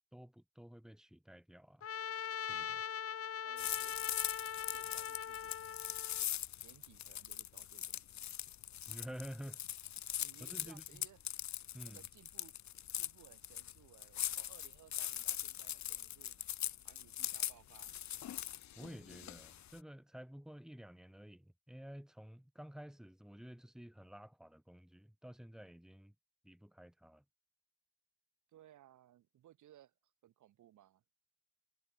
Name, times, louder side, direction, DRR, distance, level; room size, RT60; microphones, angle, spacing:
voice 1, 0.1-1.9 2.5-2.8 8.9-9.6 10.4-11.0 11.7-12.0 18.8-26.1 26.4-27.2, equal, ahead, 3.8 m, -51 dB
Trumpet, 1.8-6.2, left 8 dB, 50° left, 1.6 m, -41 dB
voice 2, 3.4-4.0 4.6-6.3 6.6-8.2 10.2-11.2 11.8-12.6 13.0-16.4 16.8-17.9 28.5-29.9 30.2-31.0, right 12 dB, 75° right, 7.9 m, -63 dB
sound 1, 3.6-19.8, left 11 dB, 65° left, 2.1 m, -41 dB
cardioid pair, 90°, 30 cm